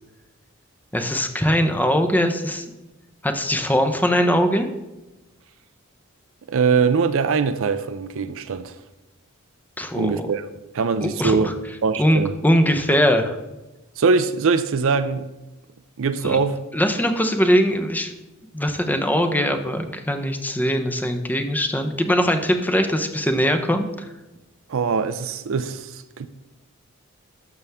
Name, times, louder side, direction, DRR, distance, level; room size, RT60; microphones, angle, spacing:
voice 1, 0.9-2.6 3.2-4.7 9.8-10.3 11.0-11.5 12.0-13.4 16.2-16.4 16.7-18.1 18.5-24.1, equal, 10° left, 0.7 m, -21 dB
voice 2, 6.5-8.8 9.9-10.5 10.7-11.5 11.8-12.4 14.0-15.3 16.0-16.6 24.7-26.3, right 5 dB, 70° right, 0.5 m, -22 dB
12.0 x 7.0 x 3.5 m
head